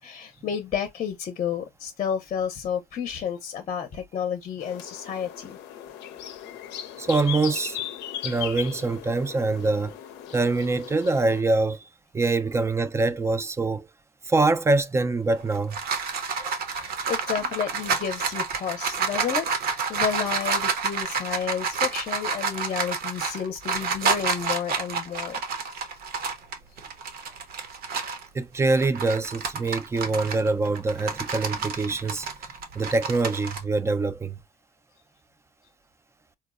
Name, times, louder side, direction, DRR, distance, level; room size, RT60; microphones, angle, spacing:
voice 1, 0.0-5.6 16.8-25.4, left 8 dB, 45° left, 0.6 m, -31 dB
sound 1, 4.6-11.4, left 11 dB, 85° left, 0.5 m, -38 dB
voice 2, 7.0-7.8 8.2-10.0 10.3-11.9 12.1-13.9 14.2-15.8 16.4-16.5 28.3-34.4, right 3 dB, 15° right, 0.3 m, -24 dB
sound 2, 15.3-28.3 28.7-33.6, right 5 dB, 65° right, 0.8 m, -29 dB
4.2 x 2.0 x 2.4 m
cardioid pair, 110°, 17 cm